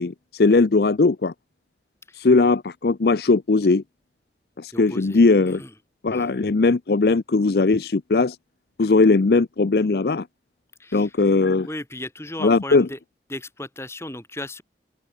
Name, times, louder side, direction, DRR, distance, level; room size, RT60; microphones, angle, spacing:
voice 1, 0.0-1.3 2.2-3.8 4.6-5.6 6.0-8.4 8.8-10.3 10.9-11.7 12.4-12.9, left 3 dB, 65° left, 0.6 m, -19 dB
voice 2, 4.7-5.8 6.1-6.3 10.8-11.1 11.7-13.0 13.3-14.6, left 1 dB, 15° left, 7.2 m, -36 dB
open air
head